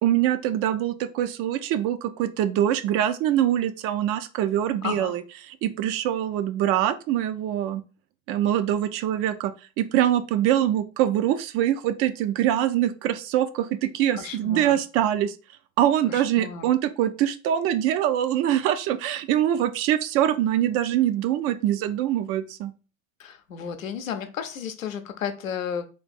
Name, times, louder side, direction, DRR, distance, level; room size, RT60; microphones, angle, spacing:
voice 1, 0.0-7.8 8.3-9.5 9.8-15.3 15.8-22.7, right 11 dB, 35° right, 0.4 m, -24 dB
voice 2, 4.8-5.1 14.1-14.7 16.1-16.6 23.2-25.9, left 7 dB, 75° left, 0.7 m, -33 dB
3.6 x 2.4 x 4.0 m
figure-of-eight pair, 70°, 40 cm